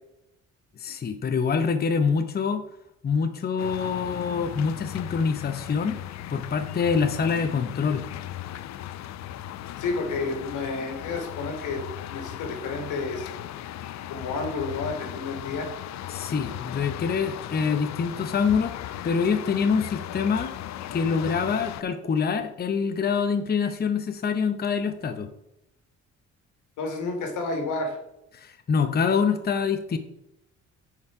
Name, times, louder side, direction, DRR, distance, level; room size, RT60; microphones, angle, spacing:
voice 1, 0.8-2.6 3.0-6.0 6.3-8.0 16.1-18.7 19.0-20.5 20.9-25.3 28.3-30.0, left 6 dB, 30° left, 7 dB, 0.7 m, -25 dB
sound 1, 3.6-21.8, left 12 dB, 65° left, 0.5 m, -37 dB
voice 2, 9.8-11.8 12.1-13.3 14.1-15.7 26.8-28.0, left 3 dB, 85° left, 4 dB, 1.9 m, -30 dB
9.2 x 4.7 x 4.9 m, 0.85 s
cardioid pair, 90°, 30 cm